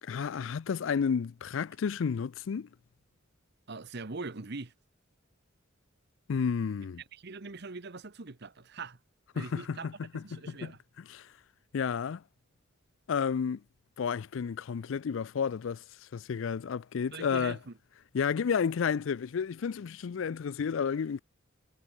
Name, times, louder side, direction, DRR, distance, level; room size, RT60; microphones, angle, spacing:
voice 1, 0.0-2.7 6.3-7.0 9.4-10.7 11.1-11.3 11.7-12.2 13.1-13.6 14.0-15.8 16.1-17.6 18.1-21.2, left 6 dB, 70° left, 0.4 m, -31 dB
voice 2, 3.7-4.7 7.1-9.0 9.3-9.9 10.2-10.8 17.1-17.7, right 3 dB, 55° right, 1.1 m, -42 dB
head